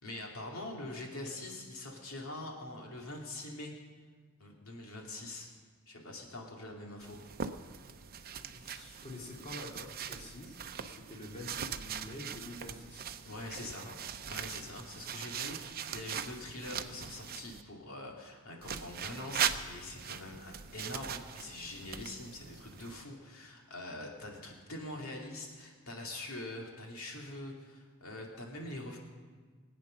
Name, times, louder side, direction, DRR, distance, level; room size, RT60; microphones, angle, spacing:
voice 1, 0.0-3.7 4.4-5.5 5.9-7.2 13.2-13.9 14.3-29.0, left 2 dB, 80° left, 0 dB, 2.5 m, -44 dB
sound 1, 7.0-17.6 18.6-23.0, right 8 dB, 45° right, 0.7 m, -40 dB
voice 2, 8.3-13.1 13.8-13.9, left 1 dB, 35° left, -1 dB, 2.5 m, -47 dB
23.0 x 8.8 x 6.5 m, 1.5 s
head